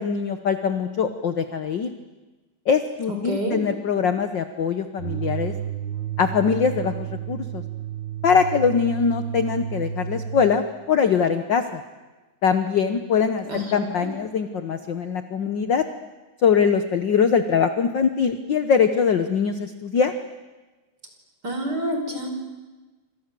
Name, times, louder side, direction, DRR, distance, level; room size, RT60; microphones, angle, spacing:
voice 1, 0.0-1.9 2.7-5.5 6.2-7.6 8.2-11.8 12.4-15.8 16.4-20.1, left 6 dB, 65° left, 9 dB, 1.1 m, -22 dB
voice 2, 3.1-3.6 13.5-13.7 14.0-14.1 21.4-22.3, equal, 30° right, 4 dB, 5.4 m, -28 dB
sound 1, 5.0-10.6, right 9 dB, 45° right, 1.7 m, -31 dB
28.5 x 26.0 x 7.7 m, 1.2 s
omnidirectional pair, 3.6 m